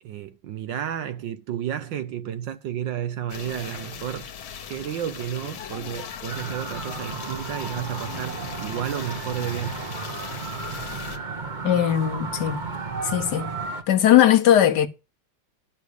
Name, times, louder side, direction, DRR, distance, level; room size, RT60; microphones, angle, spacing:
voice 1, 0.0-4.3 4.7-9.9, right 10 dB, 70° right, 1.4 m, -32 dB
sound 1, 3.3-11.2, left 7 dB, 75° left, 2.0 m, -39 dB
sound 2, 6.3-13.8, right 4 dB, 30° right, 1.0 m, -33 dB
voice 2, 11.6-12.6 13.0-13.5 13.9-14.9, left 11 dB, 60° left, 1.5 m, -19 dB
11.5 x 6.3 x 6.9 m
omnidirectional pair, 2.3 m